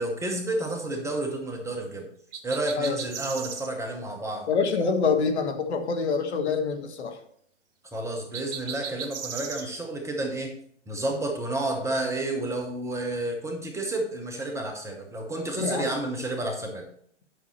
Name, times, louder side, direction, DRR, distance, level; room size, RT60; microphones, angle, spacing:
voice 1, 0.0-2.1 2.4-4.5 7.9-10.6 10.9-16.8, right 2 dB, 10° right, 2 dB, 0.9 m, -30 dB
sound 1, 2.3-3.7 8.3-9.7, right 7 dB, 50° right, 1.4 m, -36 dB
voice 2, 4.5-7.2 15.6-15.8, left 5 dB, 60° left, 5 dB, 1.5 m, -26 dB
9.1 x 6.2 x 4.3 m, 0.65 s
figure-of-eight pair, 120°, 37 cm